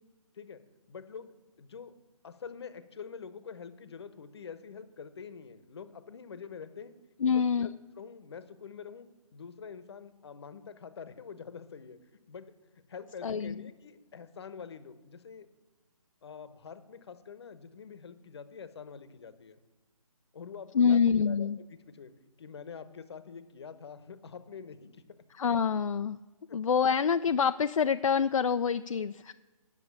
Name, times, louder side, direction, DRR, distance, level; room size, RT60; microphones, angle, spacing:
voice 1, 0.9-1.9 2.2-6.9 7.2-9.1 9.3-12.0 12.3-12.5 12.9-15.5 16.2-19.6 20.3-21.0 21.2-22.1 22.4-25.0 26.5-26.6, left 6 dB, 45° left, 12 dB, 1.0 m, -46 dB
voice 2, 7.2-7.7 13.2-13.6 20.7-21.6 25.4-26.2 26.5-29.3, left 6 dB, 65° left, 9 dB, 0.4 m, -26 dB
9.8 x 6.8 x 8.4 m, 1.2 s
figure-of-eight pair, 145°, 18 cm